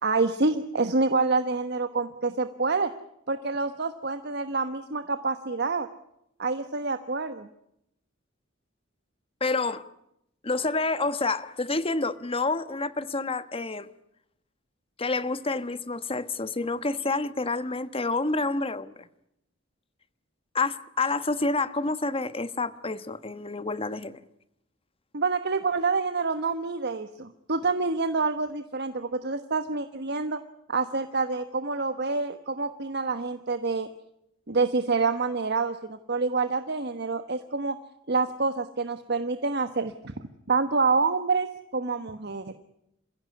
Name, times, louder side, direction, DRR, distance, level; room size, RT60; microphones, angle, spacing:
voice 1, 0.0-2.9 3.3-5.9 6.4-7.5 25.1-30.4 30.7-33.9 34.5-37.8 38.1-40.1 40.5-41.5 41.7-42.5, right 4 dB, 55° right, 1.2 m, -27 dB
voice 2, 9.4-9.8 10.4-13.9 15.0-19.1 20.5-24.2, left 3 dB, 30° left, 1.2 m, -28 dB
28.5 x 16.5 x 9.6 m
head